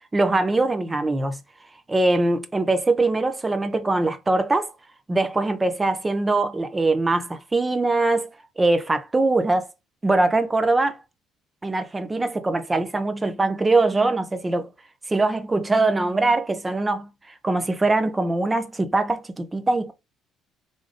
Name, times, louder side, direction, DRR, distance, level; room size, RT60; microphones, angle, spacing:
voice 1, 0.0-1.4 1.9-4.7 5.1-8.3 8.6-9.7 10.0-11.0 11.6-14.7 15.1-19.9, right 2 dB, 20° right, 0.7 m, -22 dB
3.5 x 2.6 x 3.3 m
cardioid pair, 95°, 0 cm